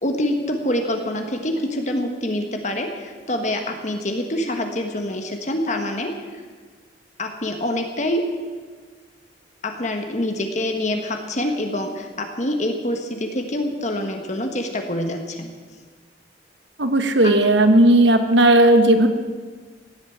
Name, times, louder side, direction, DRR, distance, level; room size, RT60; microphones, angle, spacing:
voice 1, 0.0-6.1 7.2-8.3 9.6-15.5 17.2-17.3, left 1 dB, 40° left, 4 dB, 1.3 m, -25 dB
voice 2, 16.8-19.1, right 1 dB, 70° right, 8 dB, 1.4 m, -15 dB
16.5 x 9.1 x 8.5 m, 1.5 s
head